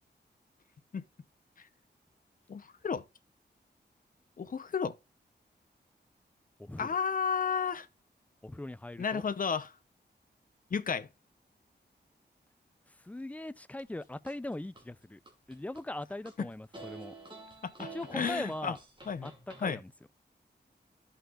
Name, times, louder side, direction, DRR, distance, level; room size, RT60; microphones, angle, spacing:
voice 1, 2.5-3.0 4.4-5.0 6.8-7.9 9.0-9.7 10.7-11.1 16.4-16.5 17.6-18.7 19.1-19.3 19.6-19.8, left 6 dB, 50° left, 0.8 m, -32 dB
voice 2, 6.6-7.0 8.4-9.2 12.9-15.2 15.5-17.2 17.8-18.8 19.2-19.9, left 1 dB, 10° left, 0.4 m, -40 dB
sound 1, 13.8-14.8 15.3-16.3 16.7-19.6, right 3 dB, 25° right, 2.5 m, -48 dB
14.0 x 5.7 x 2.5 m
wide cardioid pair, 150°, 18 cm